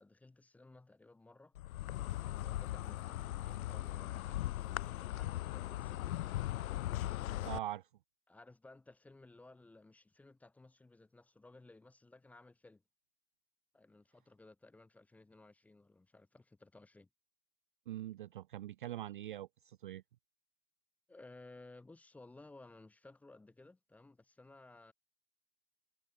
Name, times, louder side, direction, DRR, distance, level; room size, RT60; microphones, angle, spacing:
voice 1, 0.0-1.5 1.8-6.2 8.3-12.8 13.7-17.1 21.1-24.9, left 2 dB, 5° left, 1.5 m, -58 dB
Insect, 1.6-7.6, left 15 dB, 60° left, 0.5 m, -39 dB
voice 2, 7.4-7.9 17.9-20.0, right 13 dB, 35° right, 0.6 m, -43 dB
hypercardioid pair, 170°, 49 cm